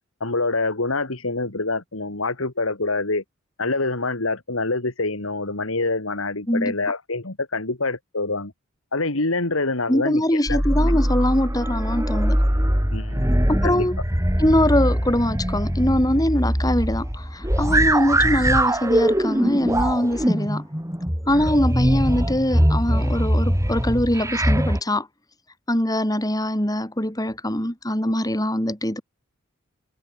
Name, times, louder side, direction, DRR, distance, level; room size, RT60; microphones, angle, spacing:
voice 1, 0.2-3.2 3.6-8.5 8.9-10.6 12.9-13.9, left 3 dB, 80° left, 2.8 m, -26 dB
voice 2, 9.9-12.4 13.5-14.0 14.4-20.6 21.3-25.1 25.7-29.0, left 1 dB, 20° left, 6.2 m, -22 dB
sound 1, 10.5-24.8, equal, 15° right, 5.6 m, -22 dB
head